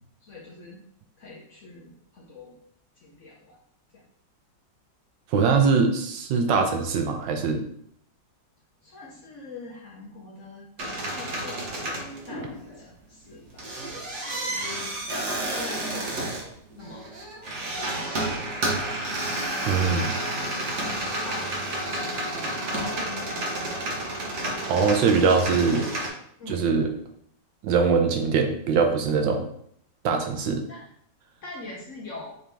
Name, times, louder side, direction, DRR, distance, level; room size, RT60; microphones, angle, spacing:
voice 1, 0.2-0.8 1.2-2.6 3.0-3.6 3.9-4.0 8.8-10.7 11.1-11.9 12.2-13.7 14.4-17.0 17.8-19.2 20.8-23.8 26.4-26.6 30.7-30.9 31.4-32.4, left 2 dB, 60° left, -2 dB, 0.8 m, -43 dB
voice 2, 5.3-7.6 19.7-20.2 24.7-25.9 26.5-26.9 27.6-29.5 30.0-30.6, right 5 dB, 80° right, 4 dB, 1.3 m, -22 dB
sound 1, 10.8-12.8 13.3-26.1, right 1 dB, 50° right, 1.0 m, -31 dB
4.9 x 3.0 x 3.4 m, 0.69 s
omnidirectional pair, 2.0 m